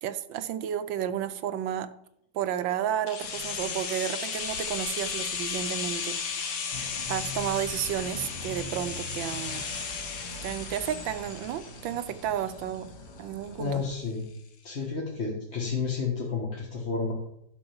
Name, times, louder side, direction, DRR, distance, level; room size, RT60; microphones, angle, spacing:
voice 1, 0.0-1.9 2.3-6.4 7.1-9.7 10.4-12.9 13.2-13.8, right 10 dB, 80° right, 12 dB, 1.4 m, -32 dB
sound 1, 3.1-12.9 13.2-13.3, left 6 dB, 75° left, 2.0 m, -35 dB
sound 2, 6.7-14.0, left 2 dB, 15° left, 1.7 m, -43 dB
voice 2, 13.6-14.3 14.6-17.1, left 4 dB, 35° left, -2 dB, 1.6 m, -31 dB
11.5 x 5.5 x 7.0 m, 0.76 s
omnidirectional pair, 2.1 m